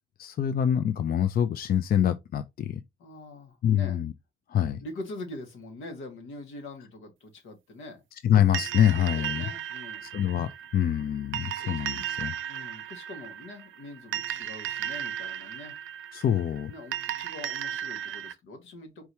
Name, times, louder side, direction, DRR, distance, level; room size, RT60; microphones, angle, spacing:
voice 1, 0.2-2.8 3.6-4.1 4.5-4.8 8.2-9.4 10.0-12.3 16.1-16.7, left 10 dB, 50° left, 0.4 m, -25 dB
voice 2, 3.0-4.0 4.8-8.0 9.1-10.1 11.6-11.8 12.5-15.7 16.7-19.1, left 2 dB, 80° left, 1.7 m, -43 dB
sound 1, 8.5-18.3, right 10 dB, 80° right, 0.5 m, -35 dB
4.6 x 2.8 x 3.3 m
cardioid pair, 90°, 20 cm